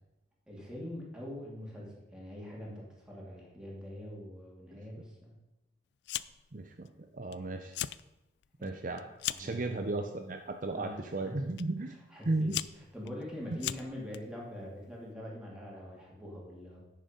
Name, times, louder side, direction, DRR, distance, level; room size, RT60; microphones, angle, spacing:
voice 1, 0.5-5.4 8.6-8.8 9.3-10.0 10.7-11.5 12.1-12.5 12.9-16.8, left 1 dB, 5° right, -4 dB, 2.7 m, -44 dB
Fire, 6.0-6.5 6.9-7.3 7.6-8.0 8.4-9.6 10.4-10.7 11.6-11.7 12.2-14.2, left 13 dB, 70° left, 0.3 m, -37 dB
voice 2, 6.5-6.9 7.1-7.8 8.6-9.0 9.4-11.9 12.2-12.6 13.5-13.6, right 2 dB, 45° right, 5 dB, 0.6 m, -34 dB
10.0 x 6.6 x 5.2 m, 0.97 s
head